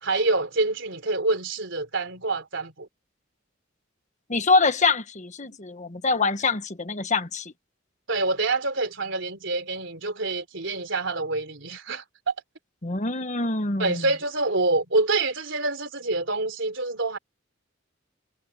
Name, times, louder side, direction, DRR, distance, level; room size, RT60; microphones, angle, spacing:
voice 1, 0.0-2.9 8.1-12.3 13.8-17.2, right 3 dB, 70° right, 3.9 m, -26 dB
voice 2, 4.3-7.5 12.8-14.0, left 3 dB, 40° left, 1.4 m, -24 dB
head